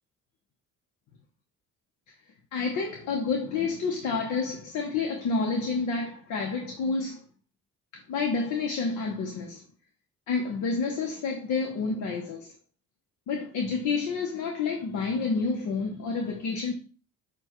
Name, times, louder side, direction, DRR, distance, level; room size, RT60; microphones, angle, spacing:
voice 1, 2.5-7.2 7.9-9.6 10.3-12.5 13.3-16.7, left 4 dB, 80° left, 0.8 m, -29 dB
6.7 x 2.3 x 3.0 m
cardioid pair, 90°, 30 cm